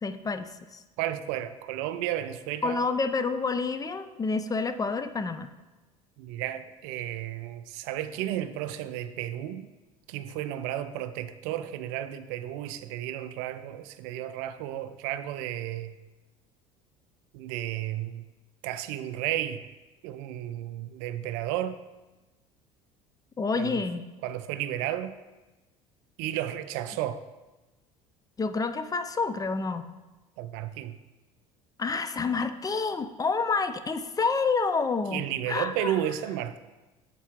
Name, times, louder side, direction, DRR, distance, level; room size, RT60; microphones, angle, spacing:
voice 1, 0.0-0.8 2.6-5.5 23.4-24.1 28.4-29.9 31.8-35.9, left 4 dB, 20° left, 10 dB, 0.4 m, -28 dB
voice 2, 1.0-2.8 6.2-9.7 10.1-15.9 17.3-18.2 18.6-19.6 20.0-21.8 23.5-23.8 24.2-25.2 26.2-27.2 30.4-31.0 35.1-36.6, right 12 dB, 65° right, 12 dB, 0.4 m, -33 dB
7.3 x 4.4 x 3.5 m, 1.1 s
hypercardioid pair, 70°, 18 cm